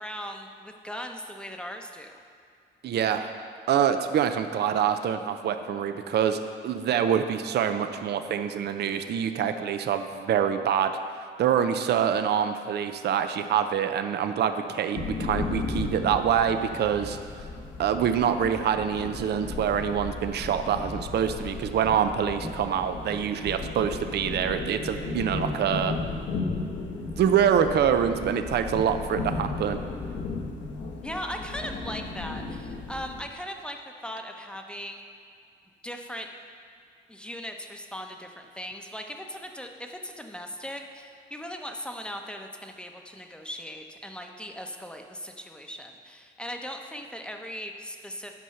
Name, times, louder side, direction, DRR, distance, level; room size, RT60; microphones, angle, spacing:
voice 1, 0.0-2.2 31.0-33.8 34.0-35.0 35.8-36.3 37.1-48.4, equal, 5° left, 3 dB, 0.8 m, -38 dB
voice 2, 2.8-3.3 3.7-10.9 11.4-17.2 17.8-25.9 27.2-29.8, right 8 dB, 55° right, 8 dB, 0.5 m, -25 dB
sound 1, 14.9-33.2, left 3 dB, 65° left, 1.1 m, -35 dB
9.3 x 5.5 x 5.7 m, 2.3 s
cardioid pair, 90°, 20 cm